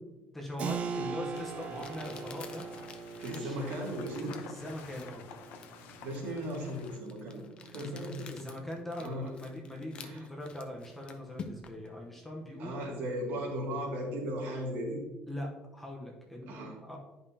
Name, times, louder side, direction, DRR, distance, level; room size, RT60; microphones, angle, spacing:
voice 1, 0.3-2.7 3.2-3.6 4.2-5.3 7.7-12.8 15.3-17.0, left 1 dB, 5° left, -1 dB, 0.8 m, -42 dB
Keyboard (musical), 0.6-11.0, right 5 dB, 40° right, 0.5 m, -43 dB
Crumpling crinkling, 0.9-1.0 1.8-11.9, left 5 dB, 30° left, 0.6 m, -50 dB
sound 1, 1.3-7.0, left 7 dB, 75° left, 0.7 m, -52 dB
voice 2, 3.2-4.4 6.0-7.4 7.7-8.3 9.0-9.3 10.0-10.2 12.6-15.0 16.5-16.8, equal, 70° right, -2 dB, 2.2 m, -36 dB
10.5 x 5.3 x 2.8 m, 1.2 s
cardioid pair, 180°, 3 cm